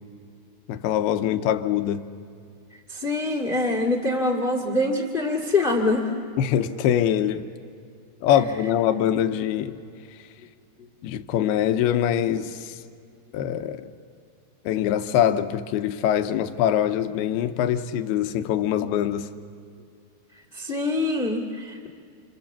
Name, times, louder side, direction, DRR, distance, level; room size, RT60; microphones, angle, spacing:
voice 1, 0.7-2.1 6.4-7.5 8.2-9.8 11.0-12.8 13.3-13.9 14.7-19.3, left 10 dB, 75° left, 8 dB, 2.7 m, -23 dB
voice 2, 2.9-6.1 20.5-21.9, left 2 dB, 30° left, 3 dB, 0.9 m, -24 dB
28.5 x 27.0 x 7.2 m, 2.3 s
omnidirectional pair, 5.0 m